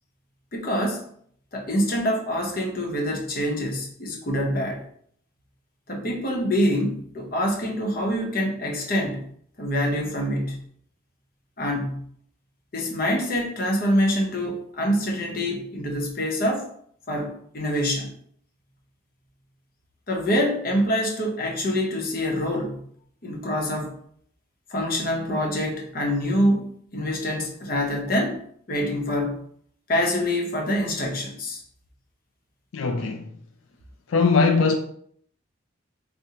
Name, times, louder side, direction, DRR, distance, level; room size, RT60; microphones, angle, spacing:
voice 1, 0.5-1.0 1.5-4.8 5.9-9.2 9.6-10.6 11.6-12.0 12.7-16.7 17.1-18.1 20.1-22.8 23.2-23.9 24.7-28.4 28.7-29.5 29.9-31.6, equal, 45° left, 0.7 m, -25 dB
voice 2, 32.7-33.3 34.1-34.8, left 4 dB, 90° left, 0.4 m, -20 dB
4.8 x 2.1 x 2.8 m
head